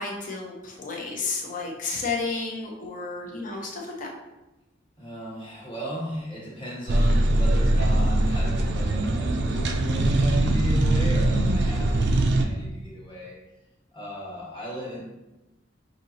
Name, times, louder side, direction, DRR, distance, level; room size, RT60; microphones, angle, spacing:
voice 1, 0.0-4.1, left 4 dB, 45° left, -1 dB, 0.8 m, -32 dB
voice 2, 5.0-13.4 13.9-15.0, right 1 dB, 25° left, -4 dB, 1.2 m, -36 dB
sound 1, 6.9-12.4, right 1 dB, 65° right, 0.4 m, -22 dB
6.0 x 2.8 x 2.8 m, 1.0 s
head